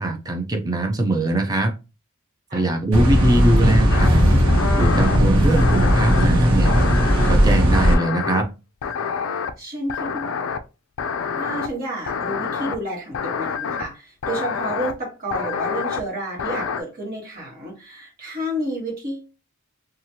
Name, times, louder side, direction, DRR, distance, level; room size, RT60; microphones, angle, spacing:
voice 1, 0.0-1.7 2.5-4.5 4.8-6.7 7.3-8.5, right 1 dB, 15° right, 0.4 m, -22 dB
sound 1, 2.9-7.9, equal, 75° right, 1.0 m, -17 dB
sound 2, 3.9-4.1 4.5-5.2 5.6-6.3 6.6-7.3 7.7-8.4 8.8-9.5 9.9-10.6 11.0-11.7 12.1-12.8 13.1-13.8 14.2-14.9 15.3-16.0 16.4-16.8, left 6 dB, 60° left, 0.3 m, -27 dB
voice 2, 9.6-10.4 11.3-19.3, right 1 dB, 40° right, 1.3 m, -30 dB
2.9 x 2.4 x 2.7 m
head